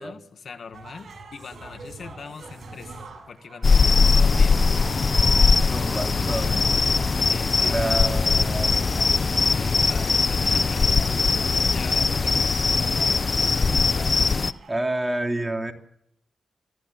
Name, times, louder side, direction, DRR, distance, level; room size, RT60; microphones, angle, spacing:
voice 1, 0.0-3.0 3.3-4.8 5.6-6.6 7.3-8.1 9.5-10.9 11.4-12.5, left 5 dB, 65° left, 9 dB, 2.0 m, -41 dB
sound 1, 0.7-15.2, right 3 dB, 55° right, 7.2 m, -44 dB
sound 2, 3.6-14.5, left 4 dB, 40° left, 0.8 m, -20 dB
voice 2, 5.7-6.5 7.6-8.9 14.7-15.7, right 1 dB, 15° right, 3 dB, 3.2 m, -29 dB
sound 3, 7.0-7.1 8.0-8.1 9.0-9.1 10.0-10.1 11.0-11.1 12.0-12.1 13.0-13.1 14.0-14.1, left 1 dB, 20° left, 2.2 m, -43 dB
25.0 x 14.5 x 7.4 m, 0.74 s
cardioid pair, 70°, 0 cm